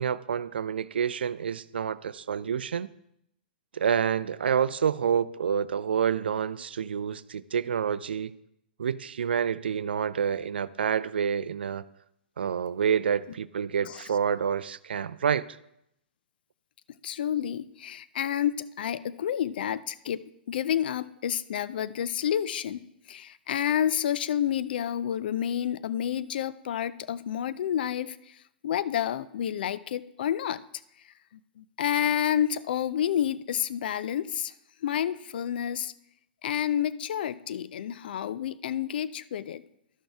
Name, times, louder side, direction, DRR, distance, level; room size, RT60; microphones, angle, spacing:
voice 1, 0.0-2.9 3.7-8.3 8.8-11.8 12.4-15.4, right 7 dB, 80° right, 0.4 m, -28 dB
voice 2, 17.0-30.6 31.6-34.5 34.8-35.9 36.4-39.6, left 10 dB, 65° left, 0.4 m, -29 dB
13.0 x 6.2 x 3.4 m
hypercardioid pair, 120°, 6 cm